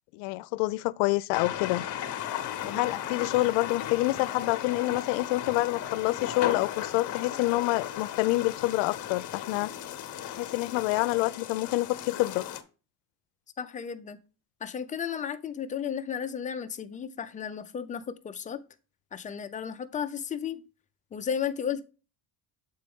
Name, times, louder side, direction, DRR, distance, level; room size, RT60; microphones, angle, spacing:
voice 1, 0.1-1.8 2.7-9.7 10.3-12.4, left 20 dB, 90° left, 0.5 m, -27 dB
sound 1, 1.3-12.6, left 11 dB, 45° left, 0.9 m, -36 dB
voice 2, 13.6-14.2 14.6-18.6 19.1-20.6 21.1-21.8, left 8 dB, 20° left, 0.3 m, -34 dB
7.7 x 4.4 x 3.5 m
cardioid pair, 155°, 42 cm